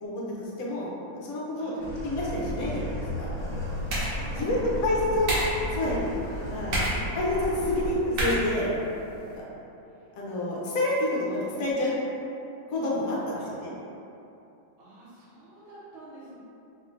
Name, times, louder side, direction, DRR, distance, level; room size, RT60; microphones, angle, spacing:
voice 1, 0.0-0.9 1.3-1.7 2.0-3.3 4.3-5.3 5.8-6.1 6.5-6.8 7.1-8.8 9.4-9.5 10.2-11.9 12.7-13.7, left 1 dB, 65° left, -5 dB, 0.9 m, -28 dB
voice 2, 1.6-1.9 3.9-6.0 6.3-7.1 7.6-7.9 9.9-10.1 11.3-11.8 13.3-13.5 14.8-16.4, right 2 dB, 85° right, -8 dB, 1.8 m, -46 dB
sound 1, 1.8-7.9, equal, 30° left, 0.5 m, -34 dB
sound 2, 3.4-9.4, right 1 dB, 55° right, 1.1 m, -33 dB
4.1 x 3.1 x 2.5 m, 2.8 s
omnidirectional pair, 2.2 m